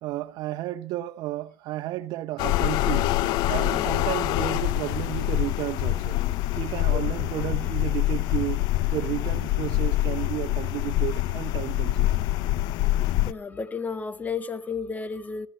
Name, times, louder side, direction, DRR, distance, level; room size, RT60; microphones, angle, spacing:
voice 1, 0.0-3.1 3.5-6.2 6.6-12.2, right 15 dB, 60° right, 0.8 m, -32 dB
sound 1, 2.4-13.3, left 15 dB, 65° left, 0.7 m, -25 dB
voice 2, 13.3-15.5, left 5 dB, 20° left, 1.4 m, -32 dB
18.5 x 14.0 x 4.3 m
hypercardioid pair, 85°, 8 cm